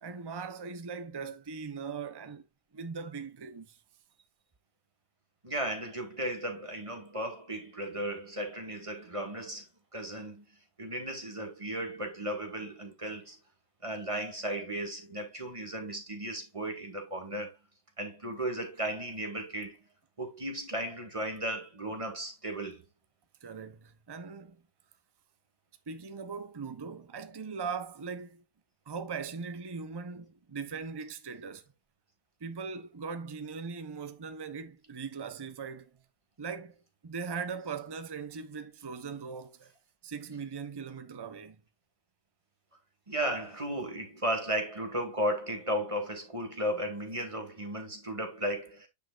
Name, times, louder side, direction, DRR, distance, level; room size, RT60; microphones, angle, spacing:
voice 1, 0.0-2.5 2.7-3.8 23.4-24.6 25.9-28.4 28.9-31.6 32.4-36.0 36.4-39.7 40.0-41.6, right 5 dB, 35° right, 0.4 m, -40 dB
voice 2, 5.4-9.7 9.9-10.4 10.8-13.4 13.8-17.6 18.0-19.8 20.2-22.8 43.1-48.9, right 1 dB, 20° right, 2.0 m, -35 dB
9.2 x 5.3 x 2.4 m
omnidirectional pair, 1.9 m